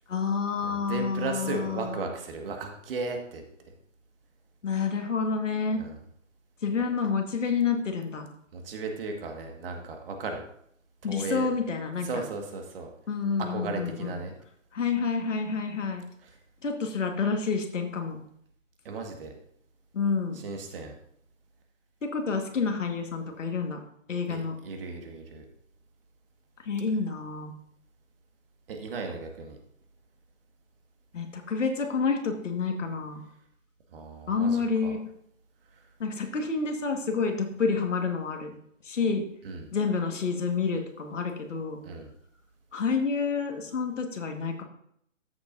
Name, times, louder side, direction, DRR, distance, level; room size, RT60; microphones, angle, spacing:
voice 1, 0.1-2.0 4.6-5.8 6.6-8.3 11.0-12.2 13.1-14.2 14.7-16.0 16.6-18.2 19.9-20.4 22.0-23.8 24.1-24.5 26.6-27.5 31.1-33.2 34.3-35.0 36.0-38.5 38.8-39.2 39.7-41.8 42.7-44.6, left 5 dB, 70° left, 4 dB, 1.8 m, -29 dB
voice 2, 0.6-3.4 5.7-6.0 8.5-10.5 11.0-11.5 12.0-12.9 13.5-14.4 18.9-19.3 20.3-20.9 24.3-25.4 28.7-29.6 33.9-34.9 35.7-35.8 39.4-39.7 41.8-42.1, right 3 dB, 45° right, 3 dB, 1.9 m, -36 dB
13.5 x 7.2 x 2.7 m, 0.69 s
figure-of-eight pair, 135°, 39 cm